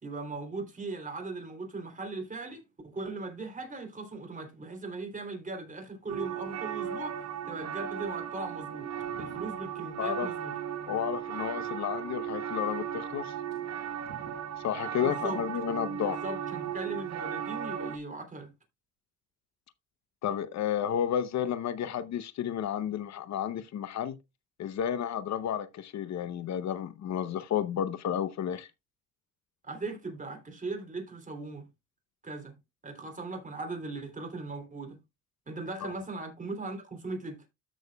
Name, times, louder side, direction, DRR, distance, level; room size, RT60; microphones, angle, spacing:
voice 1, 0.0-8.9 9.2-10.5 15.0-15.4 16.1-18.5 29.6-31.7 32.2-32.6 32.8-35.0 35.5-37.4, right 3 dB, 25° right, 3.1 m, -39 dB
sound 1, 6.1-18.0, right 9 dB, 60° right, 1.5 m, -36 dB
voice 2, 10.0-10.3 10.9-13.3 14.6-16.2 20.2-24.2 24.6-28.7 35.8-35.9, left 9 dB, 65° left, 0.8 m, -32 dB
13.5 x 6.4 x 2.3 m
cardioid pair, 90°, 30 cm